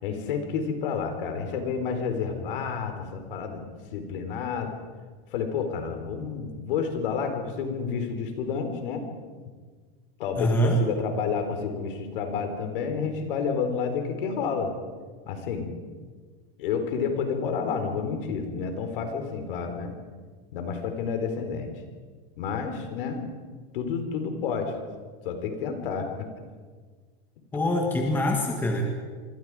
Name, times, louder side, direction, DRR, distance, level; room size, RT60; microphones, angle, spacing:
voice 1, 0.0-4.7 5.3-9.0 10.2-14.7 15.3-15.7 16.6-19.9 20.5-21.7 22.4-23.2 23.7-24.8 25.2-26.3, left 6 dB, 55° left, 6 dB, 4.1 m, -30 dB
voice 2, 10.4-10.8 27.5-28.9, equal, 5° left, 2 dB, 1.5 m, -24 dB
26.0 x 25.0 x 4.9 m, 1.5 s
supercardioid pair, 180°, 32 cm